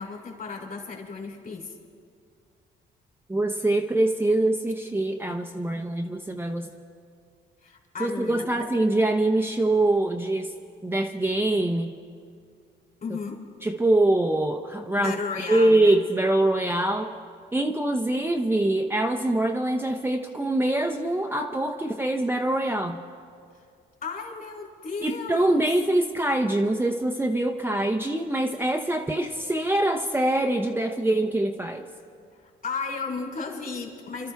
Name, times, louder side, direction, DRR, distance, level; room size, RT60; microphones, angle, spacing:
voice 1, 0.0-1.7 7.6-8.7 13.0-13.4 15.0-16.0 24.0-25.7 32.4-34.3, left 4 dB, 45° left, 1 dB, 3.4 m, -34 dB
voice 2, 3.3-6.7 8.0-10.5 10.8-11.9 13.6-17.2 17.5-23.0 25.0-31.8, right 1 dB, 10° right, 3 dB, 0.7 m, -24 dB
29.5 x 12.5 x 3.5 m, 2.3 s
cardioid pair, 90°, 20 cm